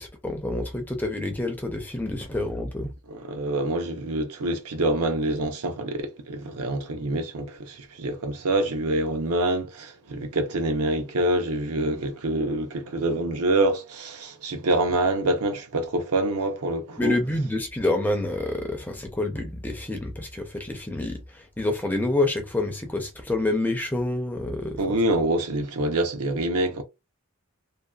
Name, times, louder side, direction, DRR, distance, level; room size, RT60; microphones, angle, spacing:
voice 1, 0.0-2.9 17.0-25.0, left 2 dB, 10° left, 0.4 m, -28 dB
voice 2, 3.1-17.2 24.8-26.8, right 2 dB, 85° right, 0.6 m, -26 dB
2.6 x 2.1 x 2.3 m
head